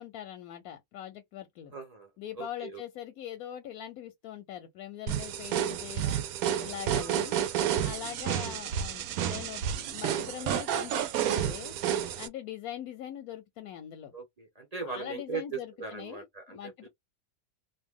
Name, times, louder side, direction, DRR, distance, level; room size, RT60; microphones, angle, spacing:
voice 1, 0.0-1.7 2.2-6.2 6.6-7.4 7.8-11.7 12.1-14.1 14.8-16.9, left 10 dB, 70° left, 0.9 m, -42 dB
voice 2, 1.7-2.1 2.4-2.8 6.9-7.6 8.4-8.6 14.1-16.9, right 5 dB, 55° right, 0.4 m, -40 dB
sound 1, 5.1-12.3, right 9 dB, 70° right, 0.9 m, -30 dB
2.7 x 2.7 x 3.5 m
omnidirectional pair, 1.9 m